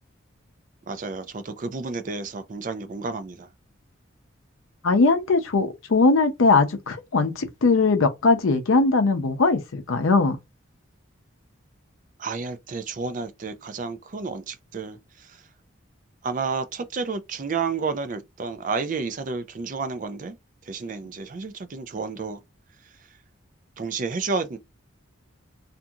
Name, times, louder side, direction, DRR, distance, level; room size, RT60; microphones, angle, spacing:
voice 1, 0.9-3.5 12.2-15.4 16.2-20.4 20.6-22.4 23.8-24.6, right 4 dB, 40° right, 0.4 m, -31 dB
voice 2, 4.8-10.4, left 3 dB, 80° left, 0.6 m, -20 dB
2.5 x 2.3 x 2.7 m
head